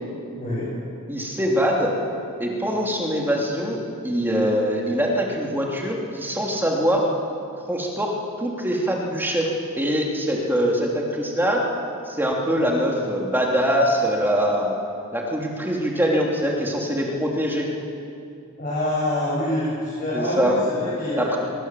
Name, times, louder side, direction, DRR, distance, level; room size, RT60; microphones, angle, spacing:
voice 1, 0.4-0.7 18.6-21.3, left 1 dB, 45° left, -9 dB, 7.5 m, -26 dB
voice 2, 1.1-1.9 2.4-7.1 7.6-9.5 9.7-11.6 12.1-14.8 15.1-17.7 20.1-20.5 21.2-21.4, equal, 10° right, -1 dB, 3.2 m, -23 dB
23.5 x 21.5 x 7.7 m, 2.5 s
head